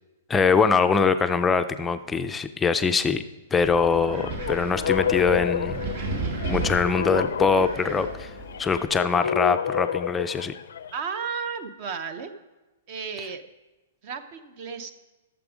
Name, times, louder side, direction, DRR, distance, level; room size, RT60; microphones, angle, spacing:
voice 1, 0.3-3.2 3.5-5.8 6.5-8.3 8.6-10.5, left 5 dB, 10° left, 9 dB, 0.4 m, -23 dB
Wind, 3.6-8.9, right 2 dB, 55° right, 1.6 m, -33 dB
sound 1, 4.1-11.0, left 8 dB, 80° left, 0.4 m, -30 dB
voice 2, 10.9-12.3 12.9-13.4 14.0-14.9, right 6 dB, 40° right, 10 dB, 0.7 m, -33 dB
12.0 x 7.0 x 5.0 m, 1.1 s
hypercardioid pair, 160°, 0 cm